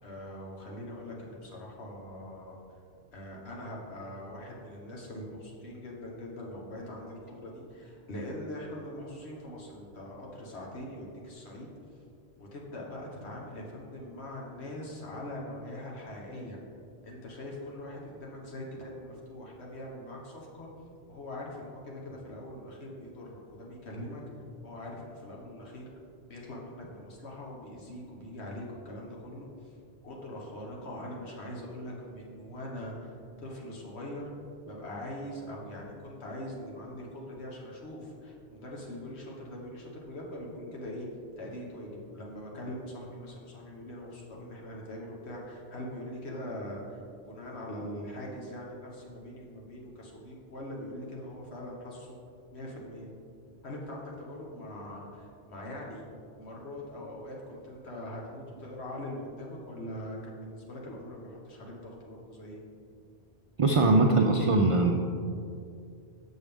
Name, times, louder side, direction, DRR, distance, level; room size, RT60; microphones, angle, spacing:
voice 1, 0.0-2.6 3.1-11.7 12.4-16.6 17.0-20.7 21.1-24.2 24.6-25.9 26.3-29.7 30.0-34.3 34.6-41.1 41.4-52.2 52.5-53.1 53.6-56.1 56.4-62.6, left 1 dB, 85° left, -2 dB, 1.5 m, -42 dB
voice 2, 63.6-64.9, right 2 dB, 55° right, 2 dB, 0.3 m, -22 dB
7.3 x 6.2 x 3.5 m, 2.4 s
omnidirectional pair, 1.1 m